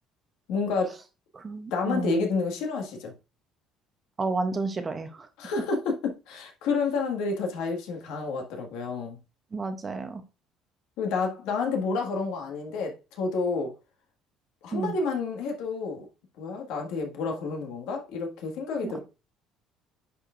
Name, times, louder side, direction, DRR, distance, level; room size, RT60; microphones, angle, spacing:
voice 1, 0.5-1.0 1.7-3.1 5.4-9.2 11.0-13.7 14.6-16.1 16.4-19.0, left 4 dB, 75° left, 1.7 m, -29 dB
voice 2, 1.3-2.2 4.2-5.3 9.5-10.2 14.7-14.9 18.8-19.0, right 3 dB, 20° right, 0.6 m, -31 dB
10.0 x 4.6 x 2.5 m
cardioid pair, 175°, 0 cm